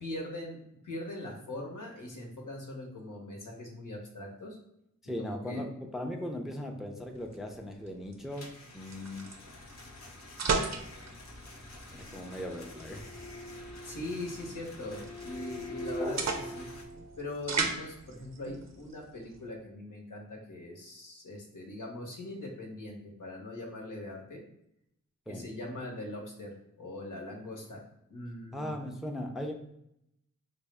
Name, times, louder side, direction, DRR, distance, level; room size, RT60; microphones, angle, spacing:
voice 1, 0.0-4.6 5.2-5.6 13.8-16.7 17.2-24.4 25.3-27.8 28.1-28.7, left 1 dB, 80° left, -1 dB, 0.9 m, -41 dB
voice 2, 5.0-9.3 11.9-13.1 25.3-25.5 28.5-29.5, left 1 dB, ahead, 2 dB, 0.4 m, -38 dB
sound 1, 7.0-19.5, right 4 dB, 60° right, 0.5 m, -38 dB
sound 2, 8.3-16.9, left 2 dB, 60° left, 0.6 m, -49 dB
sound 3, 11.3-17.6, left 1 dB, 15° left, 0.9 m, -43 dB
4.3 x 2.0 x 3.3 m, 0.79 s
wide cardioid pair, 60°, 31 cm